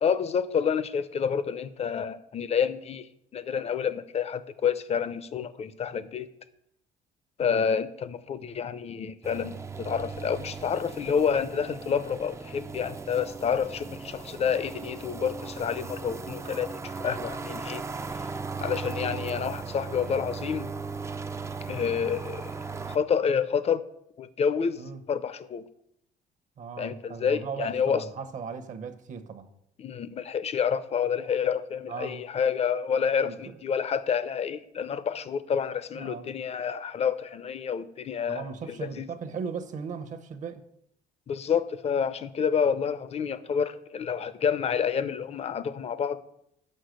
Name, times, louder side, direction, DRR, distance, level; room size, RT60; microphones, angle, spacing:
voice 1, 0.0-6.3 7.4-17.8 18.1-18.3 18.6-20.7 21.7-22.5 22.9-23.8 24.2-25.6 26.8-28.0 29.8-38.5 38.8-39.0 41.3-46.2, left 7 dB, 40° left, 0.6 m, -28 dB
sound 1, 9.2-23.0, right 4 dB, 15° right, 0.4 m, -37 dB
voice 2, 26.6-29.5 31.9-32.2 33.2-33.3 35.9-36.3 38.3-40.6, right 6 dB, 45° right, 0.9 m, -37 dB
6.5 x 5.6 x 6.6 m
cardioid pair, 110°, 17 cm